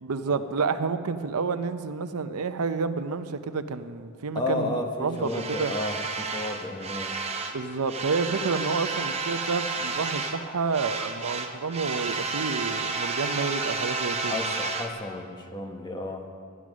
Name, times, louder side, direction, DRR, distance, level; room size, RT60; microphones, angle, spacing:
voice 1, 0.0-5.7 7.5-14.4, right 4 dB, 85° right, 10 dB, 0.6 m, -29 dB
voice 2, 4.3-7.2 13.4-13.5 14.3-16.2, left 2 dB, 20° left, 3 dB, 0.9 m, -32 dB
sound 1, 5.2-7.6 7.8-10.4 10.7-14.9, right 4 dB, 30° right, 0.7 m, -31 dB
12.0 x 9.4 x 6.2 m, 2.2 s
head